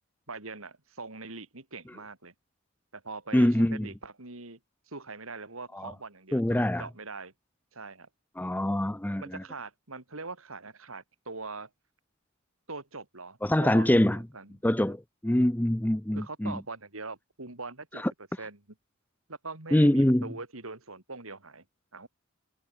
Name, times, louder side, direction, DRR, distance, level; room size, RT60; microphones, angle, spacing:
voice 1, 0.3-2.3 2.9-4.6 4.9-7.3 7.7-8.1 9.2-11.7 12.7-14.6 14.8-14.9 16.1-18.0 18.4-18.6 19.3-21.6 21.9-22.1, right 3 dB, 75° right, 3.5 m, -42 dB
voice 2, 3.3-3.9 5.7-5.9 6.3-6.8 8.4-9.4 13.4-14.2 14.6-16.5 19.7-20.3, left 1 dB, 10° left, 0.5 m, -24 dB
head